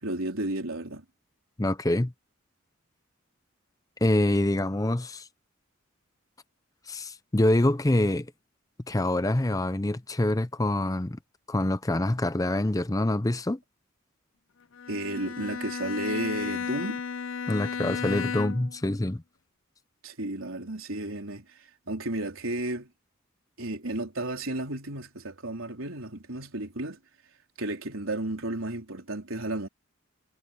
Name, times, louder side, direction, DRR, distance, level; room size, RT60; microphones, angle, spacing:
voice 1, 0.0-1.0 14.9-17.0 20.0-21.4 21.9-22.9 23.6-27.0 27.6-29.7, right 1 dB, 80° right, 3.9 m, -33 dB
voice 2, 1.6-2.1 4.0-5.3 6.9-8.3 8.9-11.2 11.5-13.6 17.5-19.2, left 1 dB, 15° left, 0.6 m, -25 dB
Bowed string instrument, 14.7-18.8, left 6 dB, 70° left, 0.6 m, -34 dB
head